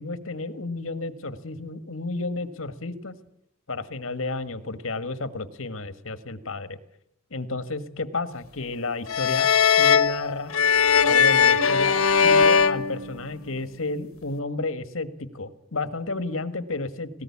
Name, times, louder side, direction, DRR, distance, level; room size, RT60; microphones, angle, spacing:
voice 1, 0.0-3.2 3.7-6.8 7.3-9.5 9.8-10.5 11.0-17.1, left 3 dB, 70° left, 12 dB, 1.6 m, -32 dB
sound 1, 9.1-13.7, left 6 dB, 90° left, 1.2 m, -20 dB
19.0 x 18.0 x 8.5 m, 0.78 s
head